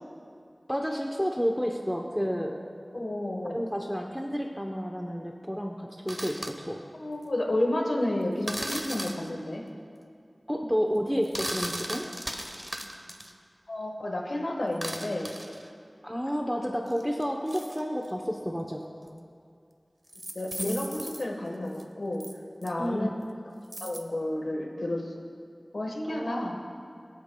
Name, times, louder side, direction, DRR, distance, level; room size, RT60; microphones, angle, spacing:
voice 1, 0.7-2.6 3.5-6.8 10.5-12.0 16.0-18.8 22.8-23.1 26.1-26.6, equal, ahead, 1 dB, 0.8 m, -30 dB
voice 2, 2.9-3.6 6.9-9.6 13.7-15.3 20.3-22.2 22.6-23.1 23.8-25.1 25.7-26.6, left 1 dB, 90° left, 0 dB, 1.3 m, -31 dB
sound 1, 6.1-6.5 8.5-9.3 11.2-13.3 14.7-15.7 16.9-18.1 19.1-19.2 20.1-21.2 21.7-21.8 22.2-22.3 22.6-22.7 23.7-24.0, right 1 dB, 25° right, 1.0 m, -37 dB
23.5 x 8.2 x 2.3 m, 2.4 s
wide cardioid pair, 40°, 0 cm